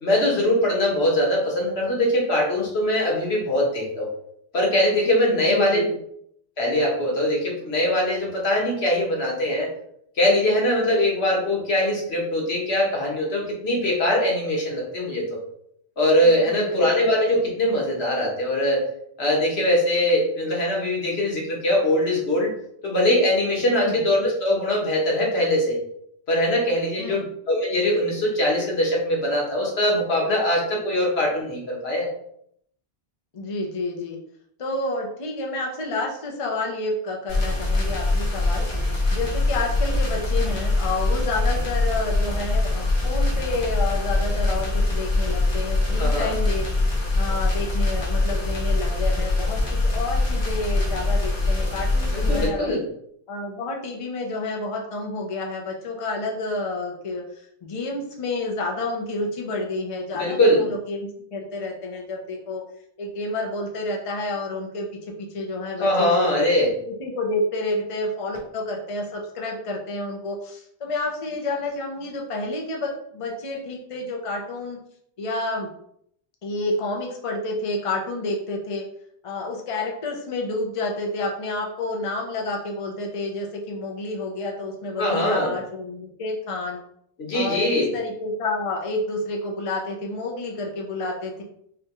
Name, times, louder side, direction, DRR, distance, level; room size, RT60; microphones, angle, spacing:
voice 1, 0.0-4.1 4.5-5.8 6.6-9.7 10.2-15.4 16.0-18.9 19.2-22.5 22.8-25.8 26.3-32.1 46.0-46.3 52.1-52.9 60.1-60.6 65.8-66.7 85.0-85.5 87.2-87.9, left 1 dB, 90° left, -2 dB, 1.5 m, -22 dB
voice 2, 5.5-5.9 16.2-16.8 23.7-24.0 27.0-27.3 33.3-34.2 34.6-38.7 39.1-46.7 47.2-52.8 53.3-62.6 63.0-64.9 65.3-66.5 66.9-74.8 75.2-75.7 76.4-78.9 79.2-86.8 87.3-91.4, left 2 dB, 40° left, 1 dB, 0.7 m, -29 dB
sound 1, 37.3-52.5, left 2 dB, 55° left, 1.4 m, -23 dB
5.9 x 2.3 x 3.0 m, 0.70 s
omnidirectional pair, 1.0 m